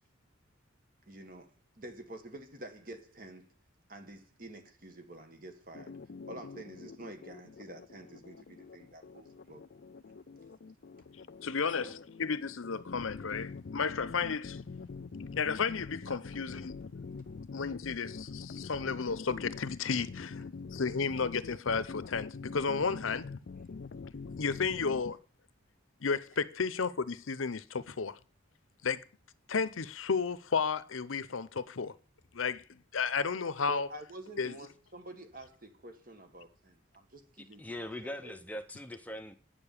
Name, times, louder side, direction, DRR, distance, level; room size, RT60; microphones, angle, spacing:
voice 1, 1.1-1.5 1.8-3.5 3.9-6.0 6.2-9.6 16.1-16.2 33.7-38.3, right 1 dB, 45° right, 1.9 m, -48 dB
sound 1, 5.7-25.1, left 4 dB, 55° left, 0.4 m, -45 dB
voice 2, 11.4-14.6 15.4-16.7 17.5-20.4 20.7-23.3 24.4-25.2 26.0-28.2 28.8-29.0 29.5-31.9 32.3-33.9 34.4-34.5, left 5 dB, 90° left, 0.7 m, -33 dB
voice 3, 37.4-39.4, left 1 dB, 10° left, 0.7 m, -42 dB
9.0 x 6.9 x 8.8 m
head